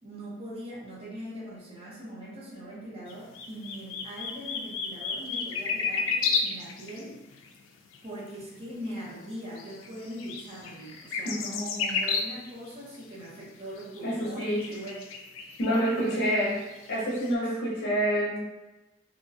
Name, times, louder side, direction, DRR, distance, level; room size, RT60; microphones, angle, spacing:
voice 1, 0.0-7.2 8.0-11.4 12.0-15.2 15.7-16.2 17.7-17.9, equal, 30° right, -6 dB, 0.7 m, -41 dB
sound 1, 3.1-7.5 7.9-8.0 8.6-8.7 9.6-12.7 12.9-13.0 13.8-17.3, left 5 dB, 80° left, 0.4 m, -32 dB
voice 2, 11.2-12.0 14.0-14.8 15.6-16.6 16.9-18.4, equal, 55° left, -5 dB, 0.7 m, -28 dB
2.9 x 2.1 x 2.6 m, 1.1 s
head